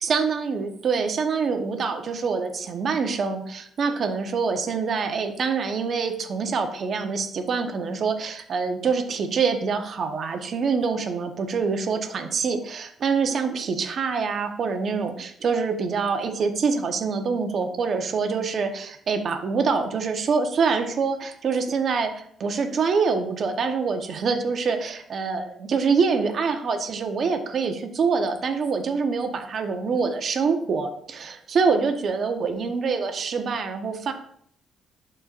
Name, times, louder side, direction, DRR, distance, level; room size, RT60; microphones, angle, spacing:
voice 1, 0.0-34.1, right 5 dB, 55° right, 6 dB, 1.0 m, -25 dB
12.0 x 4.4 x 2.5 m, 0.64 s
cardioid pair, 90°, 0 cm